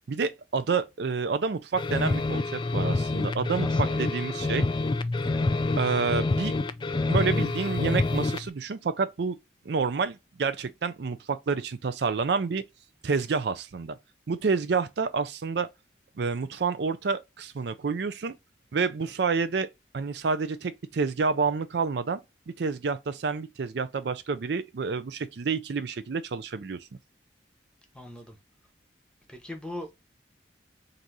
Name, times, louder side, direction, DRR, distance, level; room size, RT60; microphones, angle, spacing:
voice 1, 0.1-4.7 5.8-6.5 7.1-9.4 9.7-12.6 13.0-14.0 14.3-15.7 16.2-18.3 18.7-19.7 19.9-22.2 22.5-26.8, right 5 dB, 60° right, 0.4 m, -29 dB
sound 1, 1.7-8.5, left 2 dB, 25° left, 0.3 m, -27 dB
voice 2, 3.5-4.2 27.9-28.4 29.3-29.9, left 1 dB, 5° left, 0.9 m, -40 dB
3.9 x 2.7 x 4.6 m
head